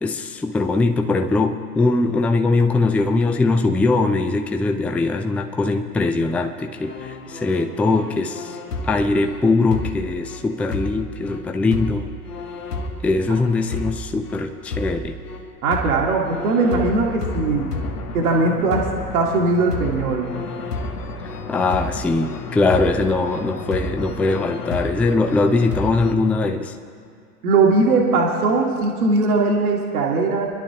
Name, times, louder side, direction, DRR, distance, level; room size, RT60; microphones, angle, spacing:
voice 1, 0.0-8.6 8.8-12.1 13.0-15.2 21.5-26.7, left 3 dB, 5° left, 6 dB, 0.4 m, -21 dB
sound 1, 6.8-26.1, left 2 dB, 80° left, 1.4 m, -31 dB
voice 2, 15.6-17.7 18.1-18.9 19.1-20.3 27.4-30.5, right 3 dB, 70° right, -1 dB, 1.8 m, -19 dB
27.5 x 11.5 x 2.9 m, 2.4 s
figure-of-eight pair, 80°, 46 cm